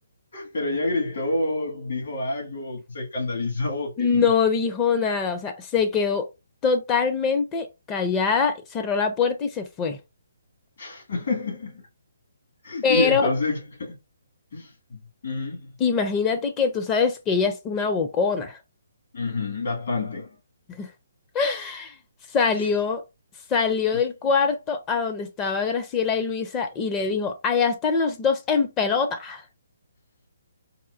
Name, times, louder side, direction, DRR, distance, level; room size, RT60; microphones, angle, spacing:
voice 1, 0.3-4.1 10.8-11.8 12.6-14.0 14.5-15.7 19.1-20.4, left 2 dB, 65° left, 1.8 m, -28 dB
voice 2, 4.0-6.3 6.6-10.0 12.8-13.3 15.8-18.6 20.8-20.9 21.3-22.0 22.3-23.0 23.5-29.4, left 5 dB, 20° left, 0.4 m, -23 dB
4.1 x 2.2 x 2.5 m
figure-of-eight pair, 145°, 0 cm